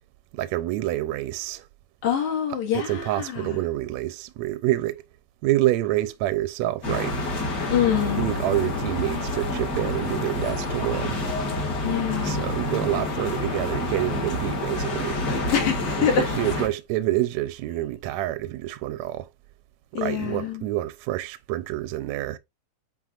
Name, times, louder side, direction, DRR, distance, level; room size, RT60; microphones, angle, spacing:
voice 1, 0.3-1.7 2.7-5.0 5.4-7.2 8.2-11.2 12.2-15.2 16.0-19.3 19.9-22.4, right 15 dB, 80° right, 1.7 m, -27 dB
voice 2, 2.0-3.6 7.7-8.4 11.8-12.5 15.5-16.3 19.9-20.7, left 8 dB, 70° left, 3.1 m, -25 dB
sound 1, 6.8-16.7, left 2 dB, 35° left, 2.1 m, -28 dB
9.3 x 4.7 x 2.5 m
omnidirectional pair, 3.5 m